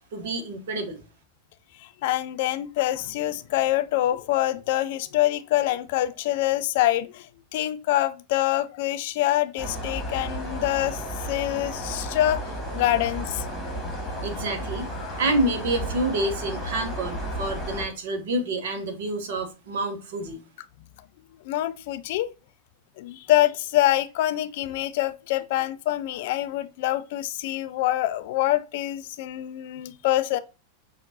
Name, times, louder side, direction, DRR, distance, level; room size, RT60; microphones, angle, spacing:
voice 1, 0.1-1.0 14.2-14.9 15.2-20.4, right 2 dB, 55° right, 0.9 m, -28 dB
voice 2, 2.0-7.3 7.5-11.0 11.3-13.5 15.0-15.1 21.4-22.3 23.0-30.4, left 14 dB, 50° left, 0.3 m, -25 dB
sound 1, 9.6-17.9, equal, ahead, 1.7 m, -33 dB
5.7 x 2.4 x 2.7 m
figure-of-eight pair, 90°, 0 cm